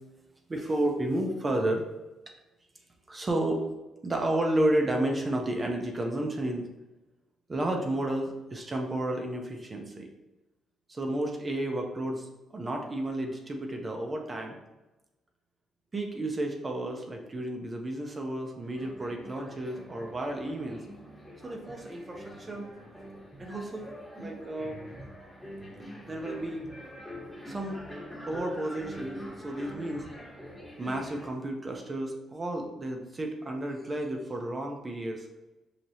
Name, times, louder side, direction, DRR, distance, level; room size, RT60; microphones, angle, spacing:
voice 1, 0.5-1.9 3.1-3.7 4.0-6.7 7.5-10.1 10.9-14.6 15.9-20.8 21.4-22.7 23.4-23.9 24.2-24.8 26.0-26.7 27.5-27.8 28.3-30.1 30.8-35.3, right 1 dB, 30° right, 2 dB, 0.6 m, -32 dB
sound 1, 18.6-31.3, equal, 5° left, 1.2 m, -44 dB
4.7 x 2.9 x 2.8 m, 1.0 s
cardioid pair, 90°, 0 cm